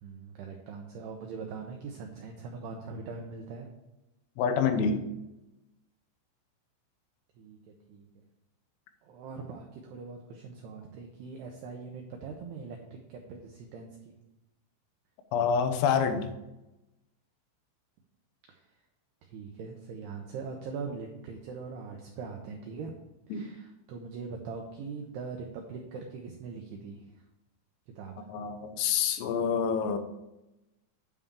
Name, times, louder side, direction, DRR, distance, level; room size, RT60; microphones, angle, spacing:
voice 1, 0.0-3.7 7.4-7.6 7.9-8.1 9.0-13.9 18.5-18.6 19.2-22.9 23.3-27.0 28.0-28.3, right 5 dB, 85° right, 2 dB, 2.3 m, -41 dB
voice 2, 4.4-5.0 15.3-16.3 23.3-23.4 28.3-30.0, left 6 dB, 90° left, 8 dB, 3.5 m, -27 dB
9.5 x 3.7 x 7.1 m, 0.95 s
omnidirectional pair, 5.7 m